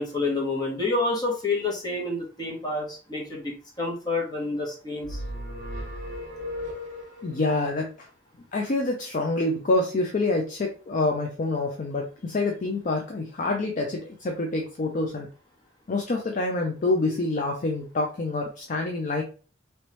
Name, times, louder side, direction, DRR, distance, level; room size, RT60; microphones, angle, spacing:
voice 1, 0.0-5.2, left 2 dB, 20° left, -2 dB, 1.1 m, -28 dB
sound 1, 5.0-7.4, left 1 dB, 45° right, 1.0 m, -35 dB
voice 2, 7.2-8.1 8.5-15.3 15.9-19.2, left 2 dB, 40° left, 2 dB, 0.5 m, -27 dB
3.1 x 3.0 x 3.0 m, 0.38 s
head